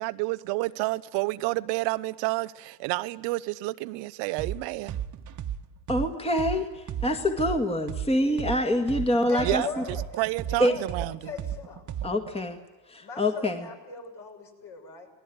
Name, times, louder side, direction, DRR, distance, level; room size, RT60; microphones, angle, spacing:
voice 1, 0.0-5.0 9.4-11.3, right 21 dB, 60° right, 14 dB, 0.8 m, -30 dB
sound 1, 4.4-4.6 4.9-8.6 8.9-12.3, right 10 dB, 35° right, 1.4 m, -34 dB
voice 2, 5.9-9.8 10.6-10.7 12.0-12.6 12.9-13.7, left 1 dB, 10° left, 6 dB, 1.9 m, -26 dB
voice 3, 9.3-10.0 10.5-11.8 13.0-15.1, left 5 dB, 55° left, 2 dB, 6.6 m, -39 dB
25.5 x 18.5 x 9.5 m, 1.1 s
hypercardioid pair, 65°, 49 cm